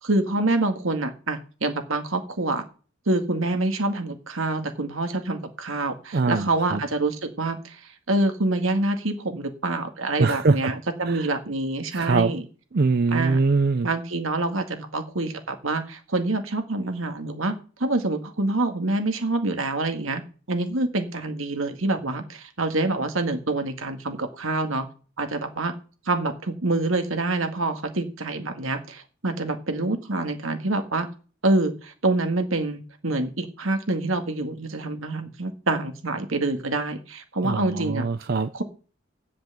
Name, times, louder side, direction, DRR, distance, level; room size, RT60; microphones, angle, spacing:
voice 1, 0.0-2.7 3.1-7.8 8.1-12.5 13.1-13.4 13.8-20.2 20.5-24.9 25.2-25.7 26.1-31.1 31.4-38.1 38.5-38.6, right 2 dB, 80° right, 6 dB, 1.9 m, -26 dB
voice 2, 6.1-6.8 10.2-10.7 11.1-11.3 11.9-12.3 12.7-13.9 37.4-38.5, right 4 dB, 50° right, 11 dB, 0.5 m, -22 dB
8.3 x 7.4 x 7.7 m, 0.38 s
head